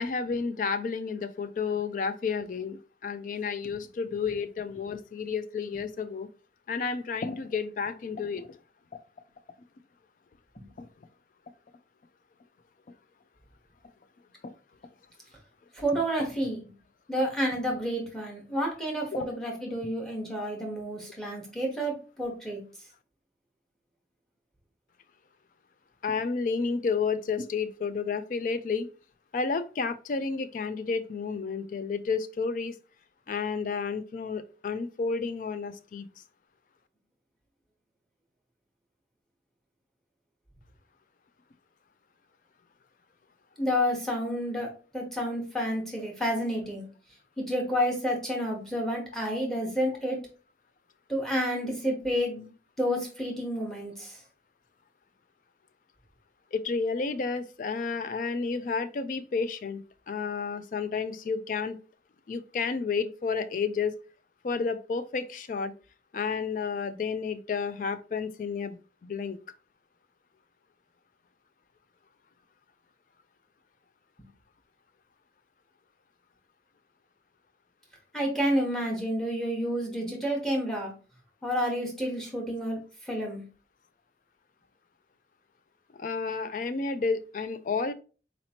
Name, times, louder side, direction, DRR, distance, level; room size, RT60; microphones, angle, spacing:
voice 1, 0.0-6.3 6.7-8.6 10.8-10.9 14.4-14.5 16.4-16.5 19.1-19.3 26.0-28.9 29.3-32.8 33.3-36.1 56.5-59.8 60.1-61.8 62.3-64.0 64.4-65.7 66.1-69.4 85.9-87.9, left 5 dB, 45° left, 12 dB, 0.3 m, -31 dB
voice 2, 15.7-16.6 17.1-22.6 43.6-44.7 44.9-46.9 47.4-50.2 51.1-52.5 52.8-54.2 78.1-80.9 81.4-83.4, equal, 5° left, 0 dB, 1.0 m, -30 dB
4.0 x 2.9 x 2.8 m, 0.36 s
head